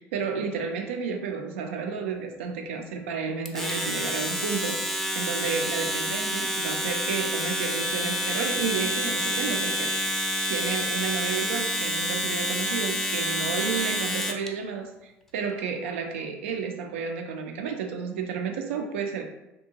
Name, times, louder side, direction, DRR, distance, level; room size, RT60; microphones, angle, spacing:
voice 1, 0.0-19.2, right 5 dB, 80° right, 4 dB, 0.4 m, -32 dB
Domestic sounds home sounds, 3.5-14.5, equal, 5° left, 0.5 m, -28 dB
2.6 x 2.2 x 2.7 m, 0.95 s
hypercardioid pair, 70°, 7 cm